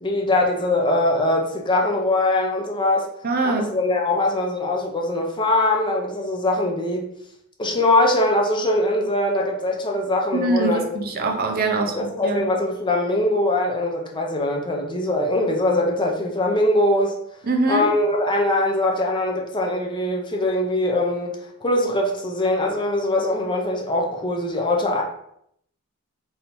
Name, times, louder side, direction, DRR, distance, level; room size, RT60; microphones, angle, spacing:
voice 1, 0.0-3.1 3.4-7.1 7.6-10.9 11.9-17.2 17.7-25.0, left 1 dB, 20° left, 0 dB, 0.6 m, -22 dB
voice 2, 3.2-3.8 10.3-12.5 17.4-17.9, right 2 dB, 45° right, 4 dB, 0.5 m, -23 dB
3.4 x 2.7 x 4.3 m, 0.72 s
head